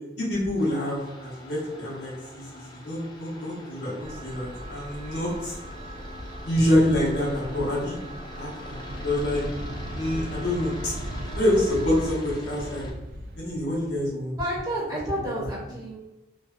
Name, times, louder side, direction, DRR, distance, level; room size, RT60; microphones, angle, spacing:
voice 1, 0.2-2.4 2.8-5.5 6.4-8.0 8.3-9.4 9.9-10.9 11.3-12.9 13.4-14.4, left 1 dB, 85° left, -6 dB, 0.9 m, -26 dB
sound 1, 0.6-12.9, left 1 dB, 25° left, 0.3 m, -44 dB
sound 2, 4.0-12.1, right 1 dB, 75° right, 0.8 m, -41 dB
sound 3, 8.9-14.1, equal, 55° right, 0.3 m, -37 dB
voice 2, 14.4-16.0, equal, 20° right, -6 dB, 0.6 m, -30 dB
2.5 x 2.1 x 2.4 m, 1.0 s
head